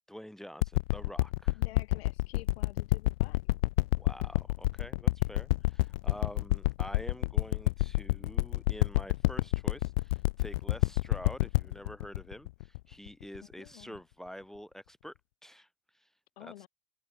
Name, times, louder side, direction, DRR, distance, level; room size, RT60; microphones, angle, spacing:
voice 1, 0.1-1.6 4.0-15.1 15.4-15.7 16.4-16.5, equal, ahead, 2.3 m, -47 dB
sound 1, 0.6-13.4 14.0-14.1, left 20 dB, 70° left, 0.9 m, -28 dB
voice 2, 1.5-3.5 13.4-14.0 16.4-16.7, left 15 dB, 90° left, 6.6 m, -51 dB
supercardioid pair, 165°, 30 cm